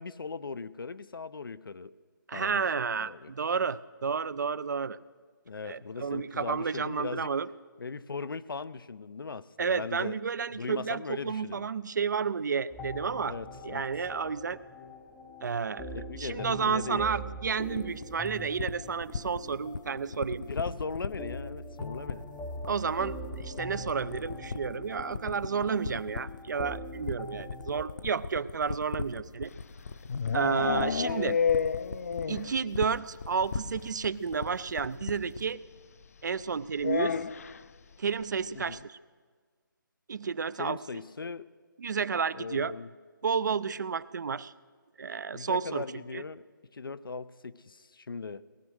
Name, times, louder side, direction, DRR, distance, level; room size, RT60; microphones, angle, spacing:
voice 1, 0.0-1.9 2.3-2.6 3.0-3.3 5.5-7.3 7.8-10.1 10.5-11.7 13.3-13.9 15.9-17.4 20.4-22.2 30.4-30.8 38.5-38.9 40.6-41.5 42.3-42.9 45.3-46.4 46.7-48.4, left 4 dB, 85° left, 15 dB, 0.6 m, -39 dB
voice 2, 2.3-5.0 5.7-7.5 9.6-13.4 13.6-14.6 15.4-15.9 16.2-20.4 22.6-29.5 30.3-31.4 32.3-35.6 36.2-37.2 38.0-39.0 40.1-40.8 41.8-42.7 43.2-44.5 45.0-45.8 46.1-46.2, right 6 dB, 55° right, 19 dB, 0.4 m, -31 dB
sound 1, 12.7-27.8, left 1 dB, 5° left, 0.6 m, -43 dB
sound 2, 17.7-35.5, left 4 dB, 60° left, 0.8 m, -37 dB
sound 3, 29.5-32.6 32.9-33.0 33.3-33.4 33.6-33.7 35.0-35.1 36.8-37.6, left 6 dB, 45° left, 0.4 m, -30 dB
18.5 x 11.0 x 6.3 m, 1.5 s
hypercardioid pair, 165°, 11 cm